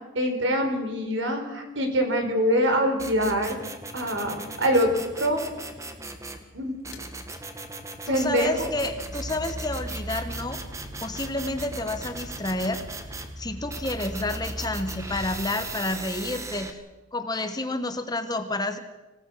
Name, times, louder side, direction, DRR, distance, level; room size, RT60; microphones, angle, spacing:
voice 1, 0.1-3.6 3.9-4.9 5.2-5.4 6.5-6.7 8.1-8.5, equal, 65° right, 4 dB, 4.3 m, -24 dB
sound 1, 3.0-6.4 6.8-13.3 13.7-16.7, right 2 dB, 15° right, 1.5 m, -39 dB
sound 2, 6.9-7.1 8.0-16.0, equal, 75° left, 2.4 m, -39 dB
voice 2, 8.1-10.6 11.0-12.8 13.4-16.8 17.1-18.8, left 2 dB, 20° left, 9 dB, 1.1 m, -30 dB
26.0 x 17.5 x 6.2 m, 1.1 s
head